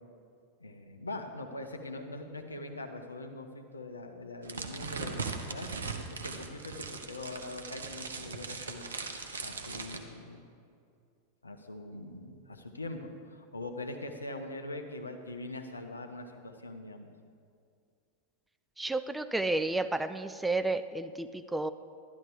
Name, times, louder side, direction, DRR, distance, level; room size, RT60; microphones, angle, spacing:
voice 1, 0.6-8.9 9.4-10.5 11.4-17.1, left 2 dB, 80° left, 5 dB, 0.8 m, -42 dB
sound 1, 4.4-10.0, right 4 dB, 70° right, 0.9 m, -39 dB
voice 2, 18.8-21.7, right 2 dB, 5° right, 11 dB, 0.3 m, -31 dB
12.0 x 11.5 x 3.6 m, 2.3 s
figure-of-eight pair, 90°, 0 cm